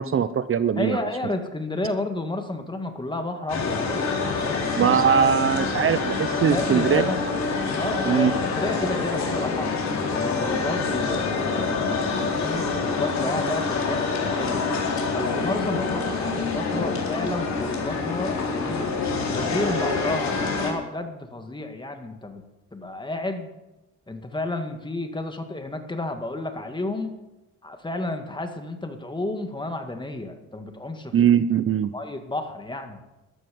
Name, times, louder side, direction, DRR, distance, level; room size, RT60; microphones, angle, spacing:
voice 1, 0.0-1.0 4.7-7.0 8.0-8.3 31.1-31.9, right 8 dB, 45° right, 12 dB, 0.8 m, -21 dB
voice 2, 0.8-4.7 6.5-7.2 7.8-9.7 10.1-14.7 15.1-18.9 19.3-22.4 22.7-23.5 24.1-27.2 27.6-31.1 31.9-33.0, left 2 dB, 15° left, 6 dB, 2.0 m, -31 dB
sound 1, 3.5-20.7, left 4 dB, 65° left, 4.0 m, -26 dB
13.5 x 12.5 x 5.4 m, 1.0 s
cardioid pair, 90°, 30 cm